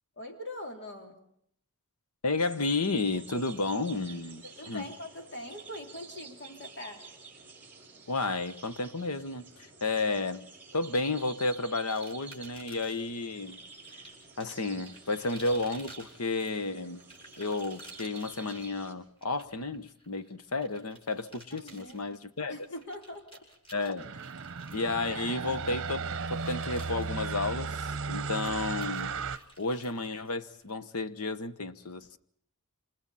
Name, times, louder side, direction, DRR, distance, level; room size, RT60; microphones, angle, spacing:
voice 1, 0.2-1.2 4.4-7.1 21.6-22.0 22.5-23.4, left 1 dB, 55° left, 3.2 m, -42 dB
voice 2, 2.2-4.9 8.1-10.5 10.7-13.6 14.4-17.0 17.4-22.6 23.7-24.1 24.7-32.2, left 3 dB, 80° left, 1.2 m, -32 dB
sound 1, 2.4-18.9, right 4 dB, 10° right, 5.3 m, -50 dB
sound 2, 11.9-13.1 13.8-30.7, right 1 dB, 25° left, 7.3 m, -54 dB
sound 3, 24.0-29.4, right 5 dB, 60° right, 0.9 m, -35 dB
28.5 x 27.0 x 4.2 m
head